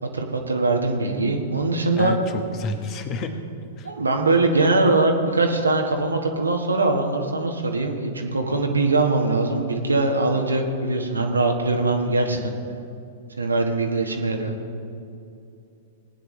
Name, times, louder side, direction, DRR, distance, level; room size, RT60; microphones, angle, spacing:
voice 1, 0.0-2.1 3.8-12.4 13.4-14.5, right 3 dB, 85° right, 3 dB, 1.4 m, -22 dB
voice 2, 2.0-3.4 3.8-3.9 12.3-12.4, left 3 dB, 35° left, 7 dB, 1.2 m, -30 dB
19.0 x 9.4 x 3.2 m, 2.6 s
figure-of-eight pair, 105°, 0 cm